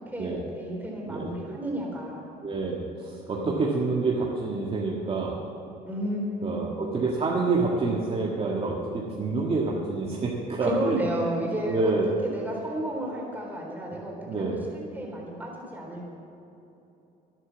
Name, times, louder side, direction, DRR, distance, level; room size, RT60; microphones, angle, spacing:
voice 1, 0.1-2.2 3.3-3.7 5.9-7.0 10.6-11.9 12.2-16.1, right 1 dB, 10° right, -2 dB, 3.8 m, -32 dB
voice 2, 2.4-5.4 6.4-11.0 11.7-12.1 14.2-14.6, right 3 dB, 35° right, -3 dB, 1.7 m, -27 dB
12.0 x 11.0 x 7.3 m, 3.0 s
cardioid pair, 110°, 17 cm